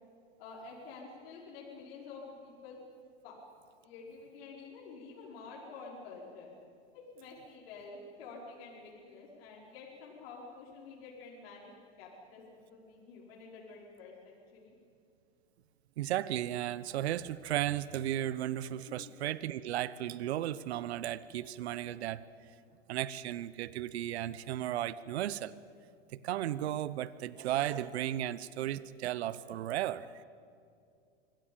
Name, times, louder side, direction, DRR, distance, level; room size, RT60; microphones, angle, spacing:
voice 1, 0.4-2.8 3.2-3.3 3.8-6.5 6.9-11.7 12.0-14.7 18.9-19.1, left 4 dB, 65° left, -4 dB, 5.4 m, -49 dB
voice 2, 16.0-22.2 22.9-25.5 26.1-30.1, right 12 dB, 75° right, 17 dB, 0.8 m, -35 dB
25.0 x 17.0 x 8.8 m, 2.4 s
hypercardioid pair, 105°, 33 cm